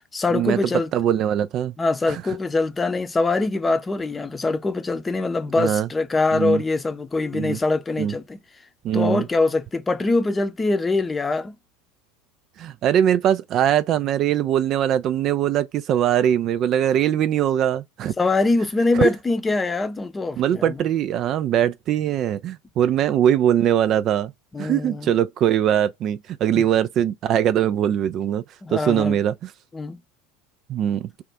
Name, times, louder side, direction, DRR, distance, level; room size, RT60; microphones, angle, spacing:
voice 1, 0.1-0.9 1.8-8.4 8.9-11.6 18.2-20.8 24.5-25.1 26.6-26.7 28.6-29.2 29.7-30.0, left 3 dB, 15° left, 0.7 m, -23 dB
voice 2, 0.9-1.7 2.1-2.2 5.6-5.9 6.3-6.6 7.3-7.6 8.0-8.1 8.8-9.2 12.6-18.1 18.9-19.1 20.4-24.3 24.6-28.4 28.7-29.5 30.7-31.1, right 10 dB, 40° right, 0.3 m, -21 dB
3.4 x 2.4 x 4.4 m
figure-of-eight pair, 80°, 0 cm